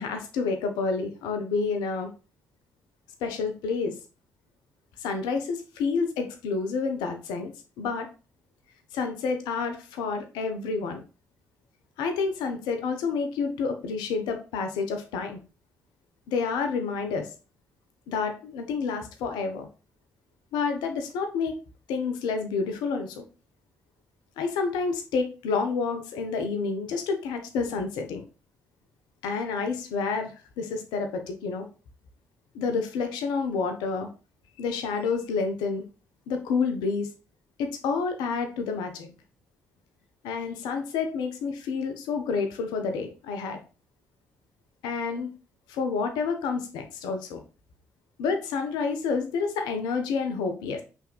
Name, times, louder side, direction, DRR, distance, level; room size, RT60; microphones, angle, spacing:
voice 1, 0.0-2.1 3.2-3.9 5.0-7.5 7.8-8.1 8.9-11.0 12.0-15.4 16.3-17.3 18.1-19.7 20.5-21.5 21.9-23.2 24.4-28.2 29.2-31.7 32.5-34.1 34.6-35.8 36.3-37.1 37.6-39.1 40.2-43.6 44.8-45.3 45.7-47.4 48.2-50.8, left 4 dB, 65° left, 6 dB, 0.7 m, -29 dB
5.6 x 3.4 x 2.3 m, 0.33 s
figure-of-eight pair, 40°, 8 cm